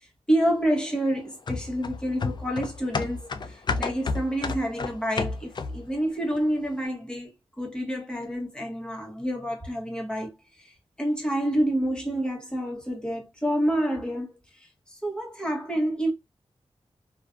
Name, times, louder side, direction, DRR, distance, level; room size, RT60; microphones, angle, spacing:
voice 1, 0.3-10.3 10.6-16.1, equal, 10° left, 0.9 m, -28 dB
sound 1, 1.5-5.9 6.3-6.4, left 4 dB, 45° left, 0.3 m, -31 dB
2.4 x 2.2 x 2.4 m
wide cardioid pair, 135°, 11 cm